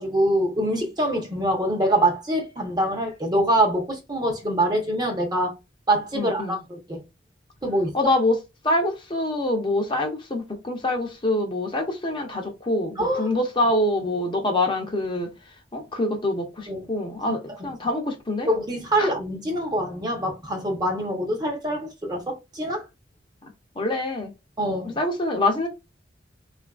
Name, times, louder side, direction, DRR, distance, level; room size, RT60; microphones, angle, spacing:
voice 1, 0.0-5.5 5.9-7.0 7.6-8.0 13.0-13.3 16.7-16.8 17.6-17.7 18.5-22.8 24.6-25.0, right 1 dB, 20° right, 0.7 m, -24 dB
voice 2, 6.2-6.6 7.9-8.4 8.6-15.3 15.7-18.5 19.0-19.1 23.4-23.5 23.8-24.3 25.0-25.7, left 1 dB, 25° left, 0.6 m, -25 dB
3.8 x 2.4 x 2.3 m
head